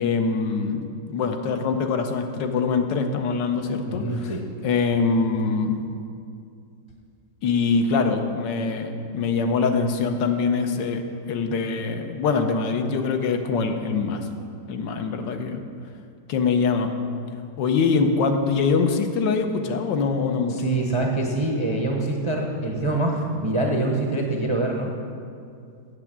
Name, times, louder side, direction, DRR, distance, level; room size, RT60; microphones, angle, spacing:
voice 1, 0.0-4.3 4.6-5.8 7.4-11.0 11.3-14.3 14.7-15.6 16.3-16.9 17.6-20.6, left 4 dB, 90° left, 5 dB, 1.5 m, -23 dB
voice 2, 3.9-4.4 20.5-24.9, right 2 dB, 40° right, 0 dB, 0.4 m, -25 dB
8.5 x 6.9 x 7.3 m, 2.4 s
omnidirectional pair, 1.9 m